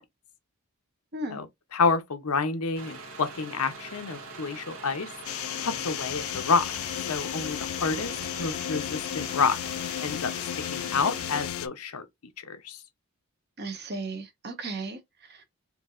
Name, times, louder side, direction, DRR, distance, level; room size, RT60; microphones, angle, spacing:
voice 1, 1.7-5.1 5.6-6.7 7.1-8.1 8.4-9.6 10.0-12.0 12.4-12.8, left 4 dB, 85° left, 0.8 m, -29 dB
sound 1, 2.7-11.5, right 3 dB, 75° right, 1.4 m, -43 dB
sound 2, 5.2-11.7, left 11 dB, 70° left, 0.4 m, -34 dB
voice 2, 13.6-15.5, right 2 dB, 50° right, 1.2 m, -36 dB
4.5 x 2.8 x 2.5 m
head